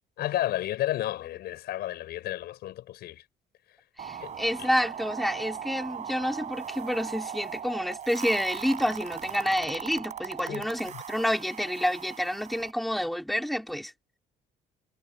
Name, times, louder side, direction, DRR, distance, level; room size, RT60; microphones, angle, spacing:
voice 1, 0.2-3.2 4.2-4.7 10.5-11.0, left 14 dB, 75° left, 5.9 m, -32 dB
voice 2, 4.0-13.9, equal, ahead, 4.0 m, -29 dB
sound 1, 4.0-12.7, right 8 dB, 45° right, 4.3 m, -39 dB
cardioid pair, 110°, 17 cm